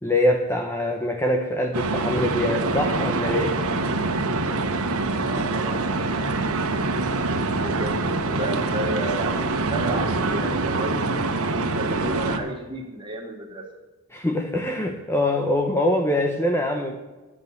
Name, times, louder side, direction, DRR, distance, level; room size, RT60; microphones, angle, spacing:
voice 1, 0.0-3.6 14.1-17.0, left 1 dB, 10° left, 3 dB, 0.8 m, -24 dB
sound 1, 1.7-12.4, right 3 dB, 80° right, 1.3 m, -25 dB
voice 2, 5.2-6.2 6.6-11.1 11.5-13.7, right 1 dB, 20° right, 0 dB, 2.3 m, -33 dB
10.5 x 7.4 x 7.9 m, 1.2 s
head